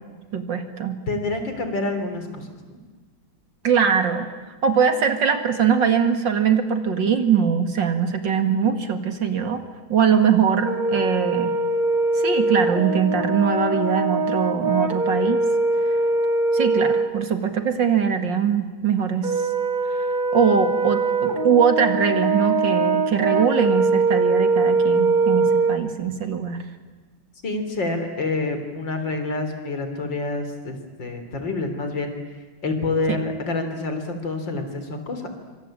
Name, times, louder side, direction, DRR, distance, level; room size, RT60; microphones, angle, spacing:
voice 1, 0.3-1.0 3.6-4.3 4.6-9.6 9.9-11.6 12.2-15.4 16.5-19.5 20.3-26.6 33.1-33.2, right 7 dB, 60° right, 7 dB, 2.7 m, -22 dB
voice 2, 1.1-2.8 27.4-32.1 32.6-35.3, left 3 dB, 60° left, 7 dB, 4.1 m, -27 dB
Brass instrument, 10.6-17.1 19.2-25.8, right 3 dB, 25° right, 1.8 m, -22 dB
26.0 x 25.0 x 8.9 m, 1.3 s
omnidirectional pair, 2.2 m